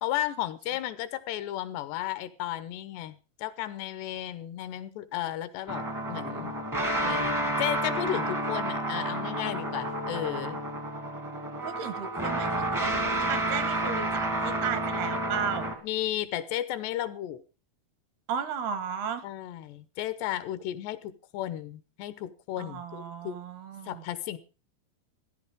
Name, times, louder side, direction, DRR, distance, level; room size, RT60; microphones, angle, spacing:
voice 1, 0.0-6.5 7.0-10.6 15.8-17.4 19.2-23.4 23.9-24.4, left 13 dB, 90° left, 13 dB, 3.1 m, -34 dB
sound 1, 5.7-15.7, right 1 dB, 15° right, 0.6 m, -30 dB
voice 2, 11.6-15.8 18.3-19.3 22.6-24.0, right 7 dB, 75° right, 12 dB, 3.1 m, -35 dB
15.5 x 11.0 x 5.1 m, 0.34 s
omnidirectional pair, 4.8 m